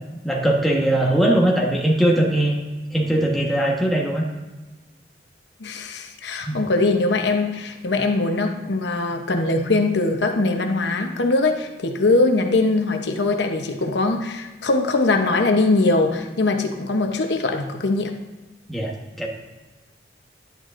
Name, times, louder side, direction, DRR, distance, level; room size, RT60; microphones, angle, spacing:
voice 1, 0.2-2.6 2.9-4.2 6.4-6.6 18.7-19.3, right 1 dB, ahead, -2 dB, 1.2 m, -20 dB
voice 2, 5.6-18.2, left 2 dB, 75° left, 4 dB, 0.8 m, -21 dB
10.5 x 9.1 x 2.5 m, 1.2 s
head